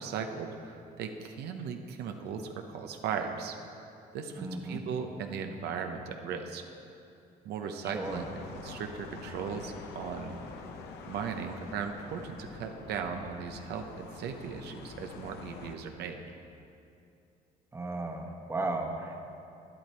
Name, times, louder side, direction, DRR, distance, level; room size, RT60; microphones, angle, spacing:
voice 1, 0.0-3.6 4.1-6.6 7.4-10.4 11.1-16.2, right 6 dB, 75° right, 5 dB, 0.8 m, -37 dB
voice 2, 4.4-4.8 7.9-8.2 17.7-19.2, right 2 dB, 15° right, 2 dB, 1.2 m, -35 dB
sound 1, 8.0-15.8, left 4 dB, 75° left, 1.0 m, -46 dB
11.0 x 10.5 x 4.4 m, 2.6 s
cardioid pair, 110°, 17 cm